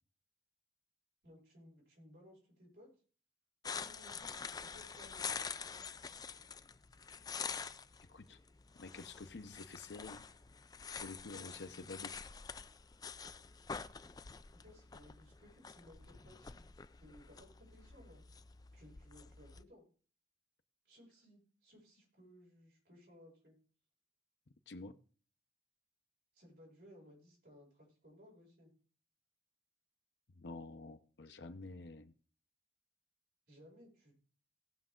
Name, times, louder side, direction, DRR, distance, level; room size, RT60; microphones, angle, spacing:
voice 1, 1.2-2.9 3.8-5.3 14.5-18.2 18.7-19.8 20.8-23.5 26.3-28.7 33.5-34.1, equal, 65° right, -3 dB, 6.5 m, -61 dB
sound 1, 3.6-19.6, left 6 dB, 20° left, 0.4 m, -47 dB
voice 2, 8.8-10.3 11.0-12.1 24.7-24.9 30.3-32.1, left 3 dB, 80° left, 8 dB, 0.8 m, -49 dB
17.5 x 6.1 x 3.8 m, 0.41 s
head